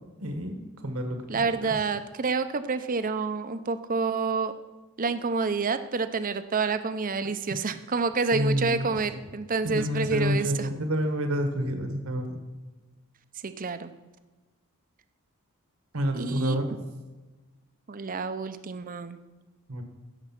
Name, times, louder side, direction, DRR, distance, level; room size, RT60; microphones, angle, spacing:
voice 1, 0.2-1.8 8.3-9.0 9.6-12.4 15.9-16.6 19.7-19.8, equal, 65° right, 5 dB, 1.4 m, -29 dB
voice 2, 1.3-4.5 5.0-10.7 13.4-13.9 16.1-16.6 17.9-19.2, right 4 dB, 40° right, 11 dB, 0.6 m, -28 dB
16.0 x 6.7 x 5.9 m, 1.2 s
head